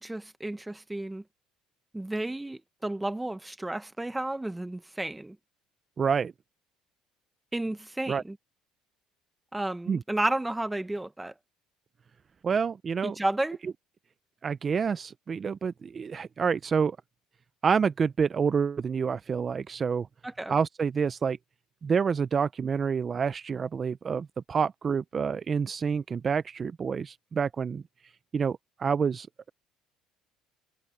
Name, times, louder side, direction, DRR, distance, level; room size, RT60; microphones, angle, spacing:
voice 1, 0.0-1.2 1.9-5.4 7.5-8.4 9.5-11.3 13.0-13.6 20.2-20.5, right 1 dB, 10° right, 0.9 m, -32 dB
voice 2, 6.0-6.3 8.1-8.2 9.9-10.0 12.4-13.2 14.4-17.0 17.6-20.1 20.5-21.4 21.8-27.8 28.3-29.5, right 6 dB, 30° right, 0.4 m, -28 dB
cardioid pair, 125°, 0 cm